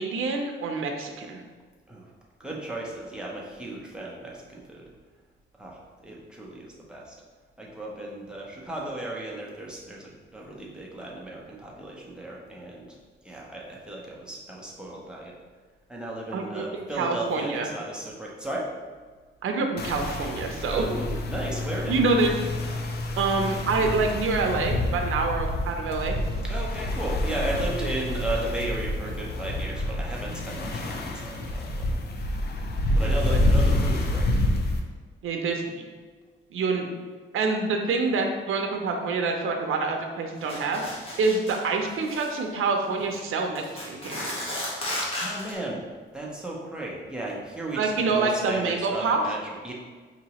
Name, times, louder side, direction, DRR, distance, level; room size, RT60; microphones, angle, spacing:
voice 1, 0.0-1.4 16.3-17.7 19.4-20.8 21.9-22.5 23.2-26.2 33.0-33.2 35.2-35.8 36.5-36.9 37.3-40.8 41.2-44.3 47.7-49.2, right 4 dB, 80° right, 3 dB, 0.6 m, -26 dB
voice 2, 2.4-4.9 5.6-7.2 7.6-13.0 13.2-15.3 15.9-18.7 20.7-22.0 26.5-32.1 32.9-34.4 45.0-45.9 46.1-49.7, right 1 dB, 5° right, -4 dB, 0.7 m, -35 dB
sound 1, 19.8-34.8, left 1 dB, 50° left, 0.4 m, -28 dB
sound 2, 40.5-41.6 41.9-42.4 43.0-43.2 43.6-45.5, left 1 dB, 25° left, 1.1 m, -34 dB
4.7 x 2.9 x 2.9 m, 1.5 s
wide cardioid pair, 140°, 21 cm